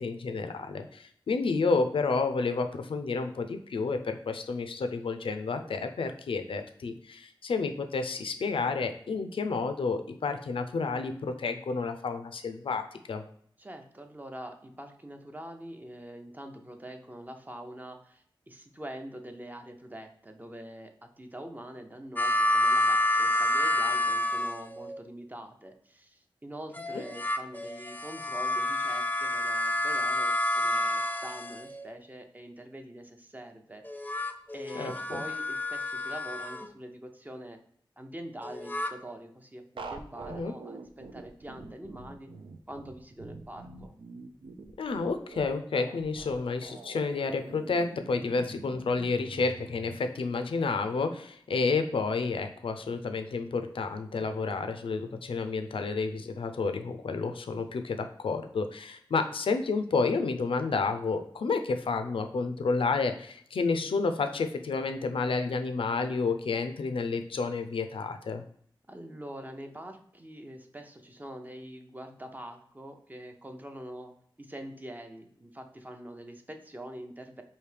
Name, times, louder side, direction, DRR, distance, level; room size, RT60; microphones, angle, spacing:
voice 1, 0.0-13.2 26.9-27.0 34.7-35.2 40.3-40.5 44.8-68.4, left 4 dB, 80° left, 7 dB, 0.4 m, -30 dB
voice 2, 13.6-33.8 34.5-37.6 38.0-42.3 42.7-43.9 68.9-77.4, right 1 dB, 20° right, 5 dB, 0.6 m, -44 dB
sound 1, 22.2-25.0 26.7-32.0 33.8-36.7 38.4-38.9, left 1 dB, 20° left, 0.4 m, -29 dB
sound 2, 39.8-50.0, right 3 dB, 75° right, 0.5 m, -45 dB
4.8 x 2.7 x 3.3 m, 0.62 s
wide cardioid pair, 55°, 9 cm